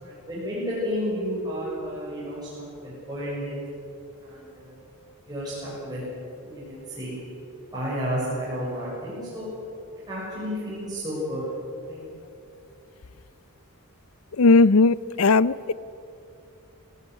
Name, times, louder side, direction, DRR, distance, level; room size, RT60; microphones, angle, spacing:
voice 1, 0.0-3.6 4.2-4.7 5.3-6.0 6.4-7.2 7.7-9.5 10.1-11.4 11.9-12.0, equal, 20° right, -8 dB, 6.9 m, -31 dB
voice 2, 14.4-15.7, left 3 dB, 65° left, 19 dB, 0.6 m, -17 dB
25.5 x 16.5 x 9.6 m, 2.7 s
head